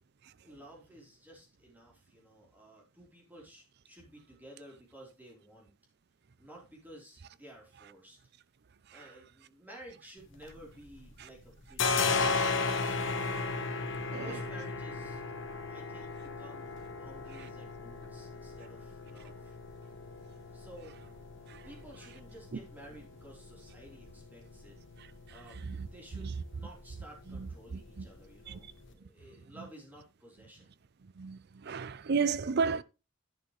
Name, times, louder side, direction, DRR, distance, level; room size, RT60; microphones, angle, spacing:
voice 1, 0.4-5.7 6.4-8.2 8.9-12.4 13.0-13.4 14.1-15.2 15.7-19.5 20.5-20.9 21.6-24.8 25.3-28.7 28.9-30.7, right 1 dB, 10° right, 3.7 m, -53 dB
sound 1, 10.2-11.1 11.4-28.9, left 4 dB, 60° left, 1.3 m, -37 dB
voice 2, 27.4-28.1 28.5-28.6 31.2-32.8, right 5 dB, 50° right, 0.5 m, -32 dB
10.5 x 8.6 x 3.2 m
head